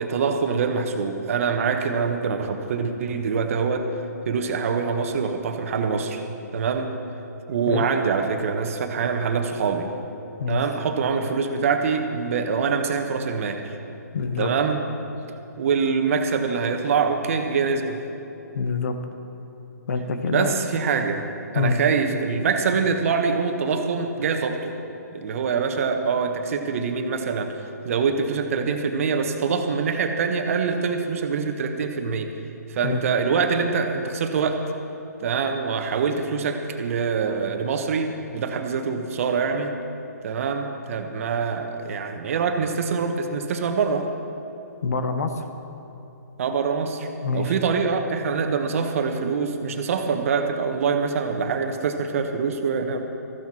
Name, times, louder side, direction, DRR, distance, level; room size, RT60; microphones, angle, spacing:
voice 1, 0.0-3.9 4.2-6.2 6.5-7.0 7.5-9.9 10.5-13.8 14.4-14.8 15.6-18.0 20.2-21.3 21.5-24.7 25.1-32.3 32.7-34.6 35.2-39.7 40.2-44.1 46.4-47.1 47.3-53.1, right 5 dB, 50° right, 5 dB, 1.3 m, -24 dB
voice 2, 14.1-14.5 18.5-19.0 19.9-20.5 21.5-21.8 32.8-33.0 44.8-45.4 47.2-47.5, left 4 dB, 60° left, 7 dB, 1.2 m, -25 dB
15.5 x 14.5 x 4.4 m, 3.0 s
figure-of-eight pair, 135°, 10 cm